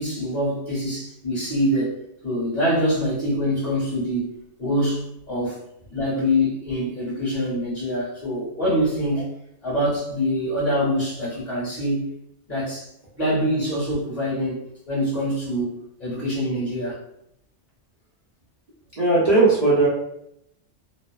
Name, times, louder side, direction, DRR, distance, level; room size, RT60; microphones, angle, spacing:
voice 1, 0.0-2.0 2.2-5.6 5.9-9.3 9.6-12.1 12.5-12.9 13.1-17.0, equal, 35° left, -9 dB, 1.4 m, -25 dB
voice 2, 19.0-19.9, right 3 dB, 45° right, -8 dB, 0.6 m, -17 dB
2.8 x 2.0 x 2.3 m, 0.77 s
omnidirectional pair, 1.2 m